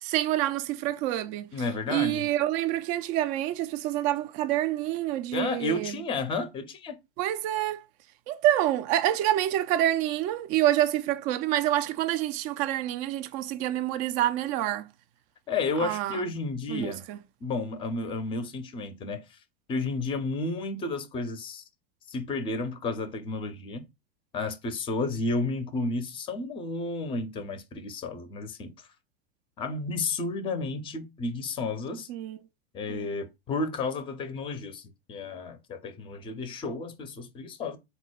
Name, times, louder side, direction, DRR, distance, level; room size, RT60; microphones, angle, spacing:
voice 1, 0.0-1.5 1.9-6.0 7.2-7.8 8.3-14.9 15.8-16.2 16.7-17.2 32.1-32.4 32.9-33.1, right 13 dB, 25° right, 0.3 m, -27 dB
voice 2, 1.5-2.3 5.3-7.0 15.5-17.0 17.4-19.4 19.7-21.6 22.1-23.9 24.3-28.9 29.6-32.1 32.7-37.8, left 3 dB, 15° left, 0.6 m, -32 dB
4.0 x 2.2 x 4.4 m
figure-of-eight pair, 95°, 30 cm